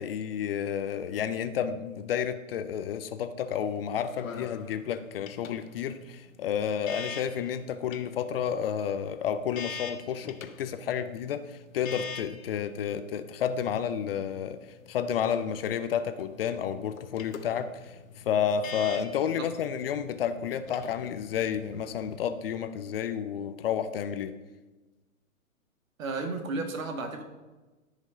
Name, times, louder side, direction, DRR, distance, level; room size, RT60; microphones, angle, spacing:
voice 1, 0.0-14.6 14.9-24.3, left 8 dB, 45° left, 10 dB, 0.6 m, -31 dB
sound 1, 3.6-22.2, left 5 dB, 70° left, 1.1 m, -45 dB
voice 2, 26.0-27.2, right 3 dB, 65° right, 5 dB, 1.7 m, -33 dB
13.5 x 5.4 x 3.8 m, 1.2 s
hypercardioid pair, 135°, 42 cm